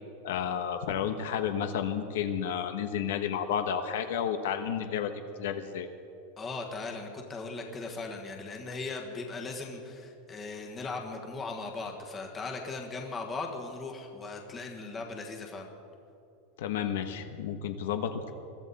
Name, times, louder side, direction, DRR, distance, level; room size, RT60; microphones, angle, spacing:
voice 1, 0.2-5.1 5.4-5.9 16.6-18.3, left 8 dB, 75° left, 7 dB, 1.1 m, -31 dB
voice 2, 6.4-15.7, left 3 dB, 15° left, 1 dB, 1.5 m, -38 dB
22.0 x 14.0 x 4.2 m, 2.6 s
supercardioid pair, 180°, 0 cm